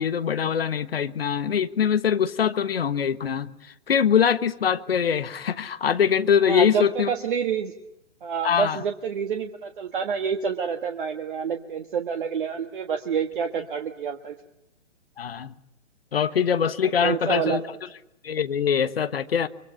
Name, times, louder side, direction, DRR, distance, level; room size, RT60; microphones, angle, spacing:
voice 1, 0.0-3.5 3.9-7.1 8.4-8.8 15.2-15.5 16.1-17.6 18.2-19.5, left 8 dB, 50° left, 13 dB, 1.3 m, -23 dB
voice 2, 6.4-7.7 8.2-14.3 17.0-17.6, right 6 dB, 45° right, 5 dB, 1.6 m, -28 dB
24.5 x 24.5 x 9.7 m, 0.79 s
figure-of-eight pair, 135°, 37 cm